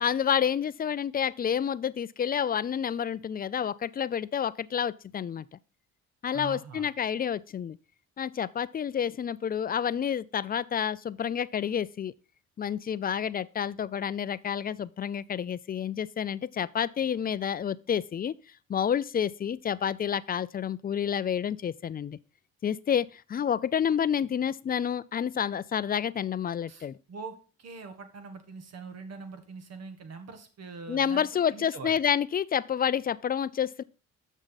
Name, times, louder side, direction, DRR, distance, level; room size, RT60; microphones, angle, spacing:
voice 1, 0.0-5.5 6.2-7.8 8.2-12.1 12.6-18.3 18.7-22.2 22.6-27.0 30.9-33.8, left 8 dB, 30° left, 0.4 m, -29 dB
voice 2, 6.3-6.9 26.7-32.0, right 4 dB, 55° right, 1.6 m, -43 dB
7.4 x 6.4 x 4.0 m
cardioid pair, 90°, 30 cm